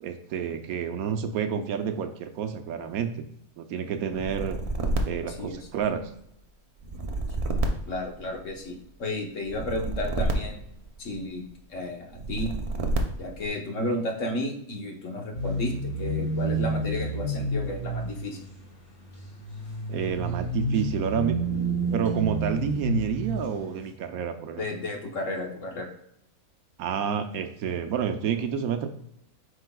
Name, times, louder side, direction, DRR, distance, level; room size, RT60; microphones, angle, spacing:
voice 1, 0.0-3.1 3.6-4.6 5.0-6.0 19.9-21.4 21.9-24.7 26.8-28.9, right 7 dB, 75° right, 7 dB, 1.1 m, -29 dB
sound 1, 4.1-6.1 6.8-8.7 9.5-11.4 12.1-13.5, right 2 dB, 40° right, 0.5 m, -30 dB
voice 2, 7.9-10.6 11.0-11.4 11.7-12.5 13.2-18.4 24.6-25.9, left 1 dB, 60° left, 1 dB, 1.4 m, -32 dB
sound 2, 15.3-23.7, right 2 dB, 30° left, 1.6 m, -30 dB
7.8 x 5.4 x 2.2 m, 0.73 s
omnidirectional pair, 1.5 m